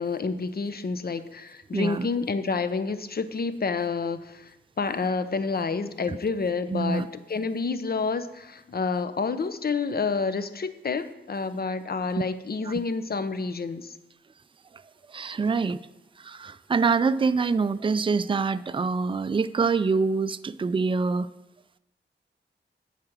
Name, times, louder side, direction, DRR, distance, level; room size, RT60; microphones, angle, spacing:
voice 1, 0.0-4.5 4.8-13.9, left 4 dB, 50° left, 11 dB, 0.7 m, -29 dB
voice 2, 1.7-2.1 6.1-6.2 6.7-7.1 12.7-12.8 15.1-15.8 16.2-21.3, right 4 dB, 25° right, 13 dB, 0.4 m, -25 dB
7.8 x 4.9 x 7.4 m, 0.95 s
cardioid pair, 50°, 20 cm